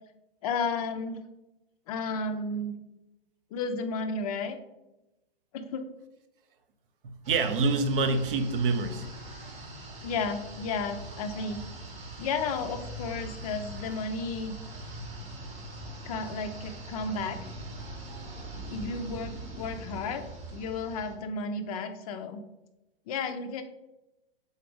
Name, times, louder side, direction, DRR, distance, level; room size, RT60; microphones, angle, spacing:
voice 1, 0.4-1.2 1.9-2.7 3.5-4.6 5.5-5.9 10.0-11.6 12.2-14.5 16.0-17.4 18.7-20.2 20.5-22.4 23.1-23.6, left 4 dB, 40° left, 7 dB, 0.4 m, -33 dB
voice 2, 7.0-9.1, right 3 dB, 60° right, 8 dB, 0.7 m, -26 dB
sound 1, 7.2-21.2, right 2 dB, 20° right, 0.8 m, -42 dB
3.9 x 2.5 x 4.7 m, 0.96 s
hypercardioid pair, 130°, 31 cm